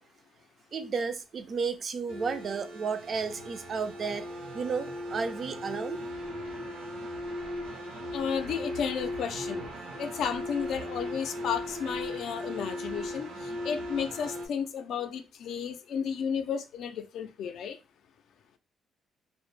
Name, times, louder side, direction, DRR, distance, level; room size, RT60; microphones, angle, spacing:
voice 1, 0.7-4.3 4.5-6.0, right 5 dB, 50° right, 0.3 m, -33 dB
sound 1, 2.1-14.5, left 1 dB, 85° right, 0.7 m, -38 dB
voice 2, 8.1-9.6 10.0-17.8, left 7 dB, 75° left, 0.3 m, -33 dB
2.1 x 2.0 x 3.0 m
cardioid pair, 90°, 0 cm